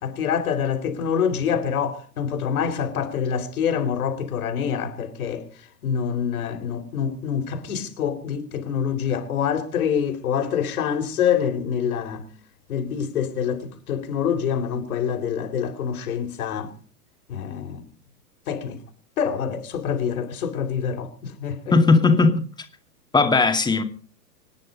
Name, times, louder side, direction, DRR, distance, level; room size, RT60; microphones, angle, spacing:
voice 1, 0.0-5.5 5.8-12.2 12.7-16.7 17.3-17.8 18.5-18.8 19.2-21.7, left 7 dB, 60° left, 4.3 m, -26 dB
voice 2, 21.7-22.4 23.1-23.8, left 3 dB, 10° left, 2.3 m, -17 dB
25.5 x 10.5 x 5.3 m
figure-of-eight pair, 110°, 49 cm